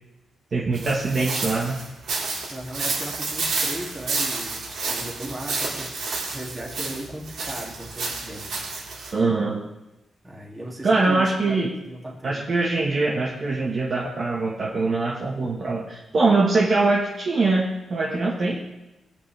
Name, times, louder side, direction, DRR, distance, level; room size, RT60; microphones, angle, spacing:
voice 1, 0.5-1.8 9.1-9.6 10.8-11.7 12.2-18.6, right 3 dB, 40° right, -3 dB, 1.5 m, -23 dB
sound 1, 0.7-9.1, right 3 dB, 75° right, 4.0 m, -30 dB
voice 2, 2.5-8.6 10.2-12.5, right 1 dB, 15° right, -3 dB, 2.7 m, -37 dB
21.5 x 8.4 x 3.4 m, 0.98 s
wide cardioid pair, 155°, 0 cm